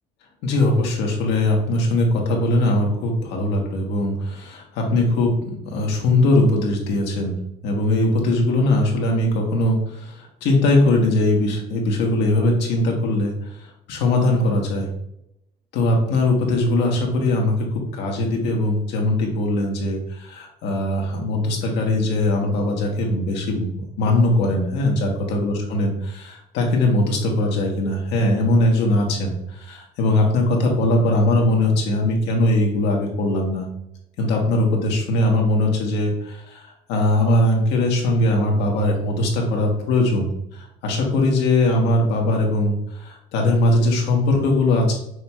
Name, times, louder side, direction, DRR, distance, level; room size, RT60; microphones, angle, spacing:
voice 1, 0.4-5.3 5.7-7.4 7.6-14.9 15.7-33.7 34.2-44.9, left 1 dB, 90° left, 0 dB, 1.2 m, -20 dB
6.1 x 3.0 x 2.3 m, 0.80 s
cardioid pair, 110°, 17 cm